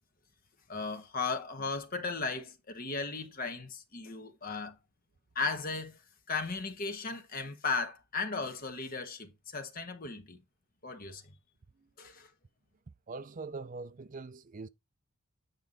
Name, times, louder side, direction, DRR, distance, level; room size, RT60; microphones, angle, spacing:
voice 1, 0.7-4.7 5.3-6.0 6.3-10.4 10.8-11.2 12.0-12.3, left 4 dB, 40° left, 1.2 m, -36 dB
voice 2, 13.1-14.7, right 3 dB, 35° right, 0.4 m, -42 dB
9.3 x 4.6 x 3.9 m
head